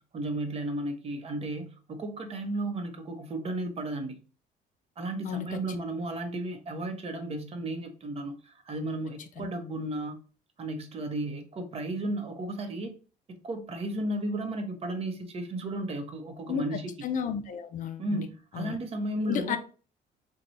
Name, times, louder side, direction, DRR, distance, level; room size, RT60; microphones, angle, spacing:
voice 1, 0.1-4.2 5.0-10.2 10.6-12.9 13.3-16.9 18.0-19.6, right 1 dB, 35° right, 0.8 m, -34 dB
voice 2, 5.2-5.6 9.4-9.5 16.5-16.7 17.0-18.3 18.5-18.8 19.2-19.6, left 8 dB, 50° left, 0.4 m, -32 dB
3.0 x 2.2 x 3.8 m
cardioid pair, 110°, 17 cm